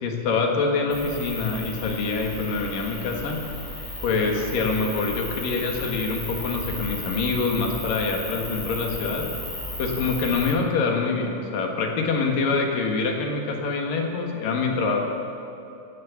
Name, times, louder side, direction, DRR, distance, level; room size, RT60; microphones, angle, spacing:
voice 1, 0.0-3.4 4.0-9.3 9.8-15.1, left 4 dB, 90° left, 1 dB, 3.5 m, -25 dB
sound 1, 0.9-10.5, left 1 dB, 10° left, 1.3 m, -35 dB
17.0 x 11.0 x 7.2 m, 2.9 s
omnidirectional pair, 3.8 m